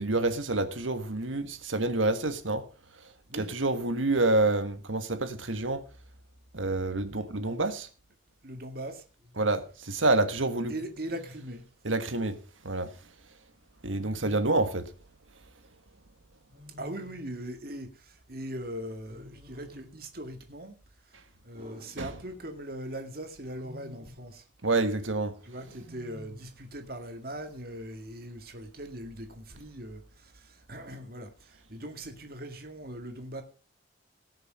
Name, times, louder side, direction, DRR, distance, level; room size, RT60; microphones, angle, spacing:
voice 1, 0.0-2.6 3.4-5.8 6.5-7.9 9.4-10.7 11.8-12.4 12.6-12.9 13.8-14.9 22.0-22.1 24.6-25.3, right 2 dB, 85° right, 1.6 m, -27 dB
voice 2, 8.4-9.0 10.7-11.6 16.8-20.8 21.0-21.2 21.4-24.5 25.4-33.4, right 1 dB, 50° right, 2.1 m, -40 dB
Wild animals, 9.2-9.5 10.8-11.5 13.8-14.7 16.5-17.6 19.1-20.0 21.5-22.7 23.4-24.3 25.6-26.6, left 2 dB, 30° right, 3.3 m, -51 dB
18.5 x 6.8 x 5.5 m
head